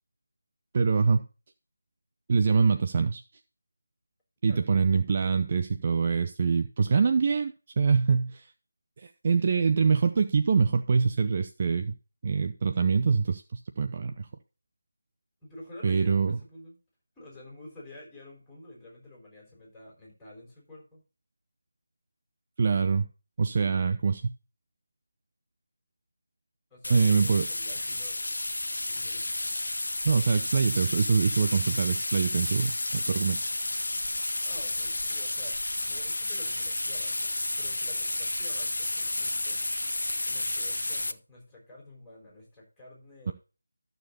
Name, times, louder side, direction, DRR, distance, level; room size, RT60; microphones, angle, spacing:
voice 1, 0.7-1.3 2.3-3.2 4.4-8.5 9.0-11.9 12.2-14.3 15.8-16.4 22.6-23.1 23.4-24.3 26.9-27.5 30.0-33.4 43.3-43.4, right 5 dB, 30° right, 8 dB, 0.6 m, -24 dB
voice 2, 15.4-16.8 17.2-21.0 26.7-28.2 28.9-29.3 34.4-39.7 40.3-43.3, left 1 dB, 5° left, -4 dB, 5.3 m, -49 dB
sound 1, 26.8-41.1, left 2 dB, 65° left, 0.7 m, -31 dB
13.0 x 6.7 x 4.1 m, 0.33 s
figure-of-eight pair, 160°, 0 cm